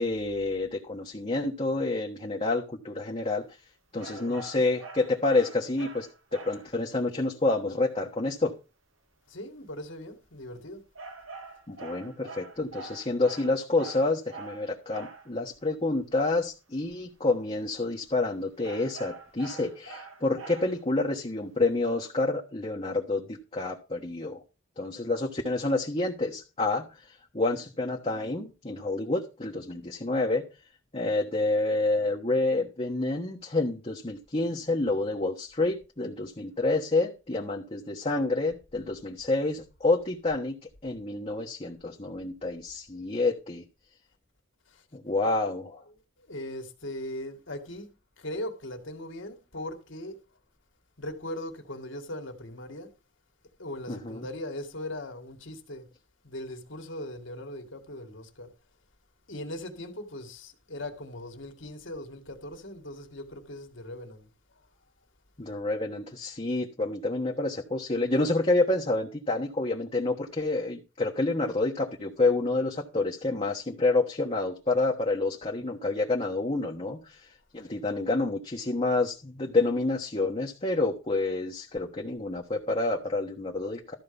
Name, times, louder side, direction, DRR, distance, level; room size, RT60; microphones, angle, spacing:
voice 1, 0.0-3.5 3.9-6.1 6.3-8.5 11.7-24.4 24.8-26.8 27.3-30.4 30.9-40.6 40.8-43.6 44.9-45.8 53.9-54.2 65.4-77.3 77.5-83.9, left 2 dB, 30° left, 1.2 m, -28 dB
sound 1, 4.0-6.7 11.0-15.3 18.6-20.9, right 3 dB, 90° right, 2.2 m, -44 dB
voice 2, 4.1-4.7 9.3-10.8 44.7-44.9 45.2-45.3 45.8-47.9 48.2-50.2 51.0-52.9 53.6-55.9 56.2-58.5 59.3-64.7 77.6-77.7, left 1 dB, 70° left, 2.1 m, -39 dB
13.0 x 4.7 x 7.0 m
head